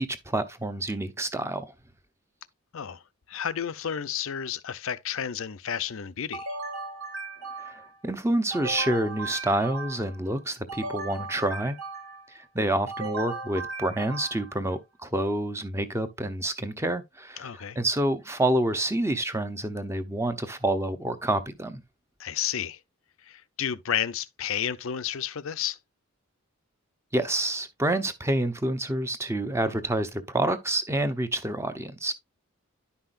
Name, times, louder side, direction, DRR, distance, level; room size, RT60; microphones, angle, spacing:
voice 1, 0.0-1.7 7.6-11.8 12.3-17.5 17.8-21.8 27.1-32.1, right 1 dB, 10° right, 0.8 m, -28 dB
voice 2, 3.3-6.5 17.4-17.8 22.2-22.8 23.2-25.8, left 9 dB, 65° left, 0.6 m, -31 dB
sound 1, 6.3-8.0 8.5-10.2 10.7-12.3 12.9-14.6, right 3 dB, 70° right, 1.9 m, -37 dB
10.5 x 5.7 x 2.5 m
head